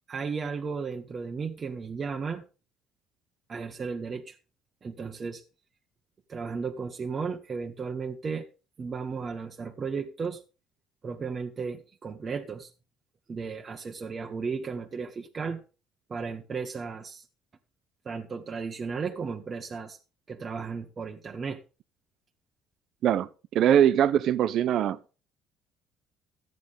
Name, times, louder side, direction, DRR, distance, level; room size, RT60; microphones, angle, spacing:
voice 1, 0.1-2.4 3.5-4.4 4.8-5.4 6.3-8.5 8.8-10.4 11.0-12.7 13.3-15.6 16.1-17.3 18.0-20.0 20.3-21.6, right 5 dB, 30° right, 1.3 m, -34 dB
voice 2, 23.0-25.0, right 10 dB, 60° right, 0.7 m, -22 dB
14.5 x 9.2 x 3.6 m
cardioid pair, 115°, 0 cm